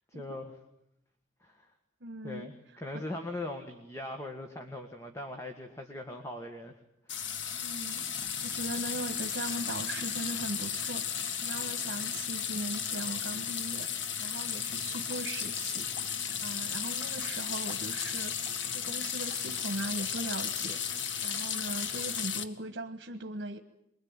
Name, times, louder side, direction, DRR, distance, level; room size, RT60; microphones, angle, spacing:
voice 1, 0.1-0.5 1.4-1.7 2.2-6.8 7.1-7.3, left 1 dB, 15° left, 4 dB, 1.8 m, -40 dB
voice 2, 2.0-3.0 7.6-23.6, right 1 dB, 70° right, 7 dB, 1.5 m, -40 dB
sound 1, 7.1-22.4, left 7 dB, 85° left, 1.8 m, -34 dB
24.5 x 22.5 x 9.0 m, 0.82 s
head